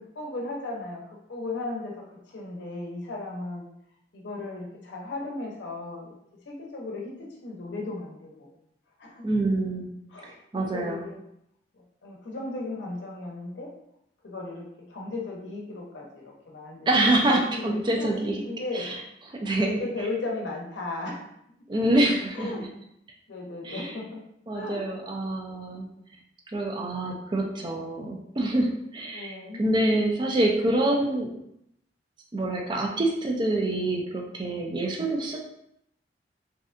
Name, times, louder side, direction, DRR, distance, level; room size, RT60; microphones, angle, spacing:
voice 1, 0.0-2.0 2.3-3.7 4.1-6.2 6.5-8.5 9.0-9.2 10.1-10.4 10.7-11.2 11.7-13.7 14.2-18.9 19.6-21.3 22.3-22.6 23.3-24.2 24.5-24.8 29.1-29.6, left 2 dB, 80° left, -1 dB, 0.6 m, -36 dB
voice 2, 9.2-9.9 10.5-11.0 16.9-18.4 18.7-19.0 19.4-19.7 21.7-22.7 23.6-23.9 24.5-25.9 26.5-31.3 32.3-35.4, right 1 dB, 25° right, 0 dB, 0.3 m, -26 dB
2.6 x 2.1 x 2.4 m, 0.76 s
head